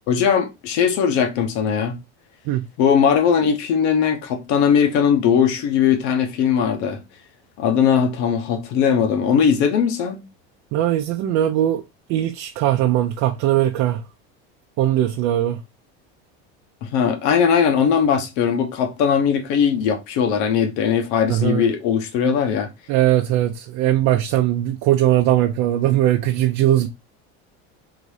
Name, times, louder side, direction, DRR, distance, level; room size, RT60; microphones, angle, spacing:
voice 1, 0.1-2.0 2.8-7.0 7.6-10.2 16.8-22.7, left 7 dB, 65° left, 1.1 m, -19 dB
voice 2, 10.7-11.8 12.1-14.0 14.8-15.6 21.3-21.7 22.9-26.9, right 12 dB, 60° right, 0.7 m, -19 dB
3.9 x 2.7 x 4.8 m
supercardioid pair, 135°, 31 cm